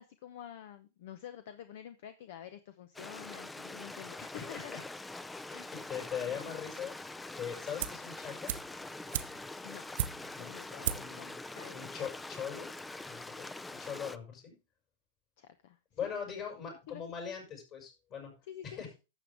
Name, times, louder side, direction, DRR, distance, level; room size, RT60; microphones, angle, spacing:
voice 1, 0.0-4.3 9.6-9.9 10.4-11.3 11.5-11.9 15.4-16.1 16.9-17.0 18.5-18.8, left 10 dB, 60° left, 11 dB, 0.8 m, -49 dB
Stream, 2.9-14.2, left 2 dB, 10° left, 0.5 m, -44 dB
voice 2, 4.3-4.8 5.5-8.5 10.4-11.3 11.7-12.7 13.1-14.6 15.9-18.3 18.6-18.9, left 7 dB, 40° left, 2 dB, 6.2 m, -41 dB
sound 1, 7.8-8.1 8.5-10.5 10.8-11.2 11.5-11.6, right 11 dB, 65° right, 0.8 m, -36 dB
12.0 x 7.4 x 3.5 m, 0.29 s
hypercardioid pair, 105°, 0 cm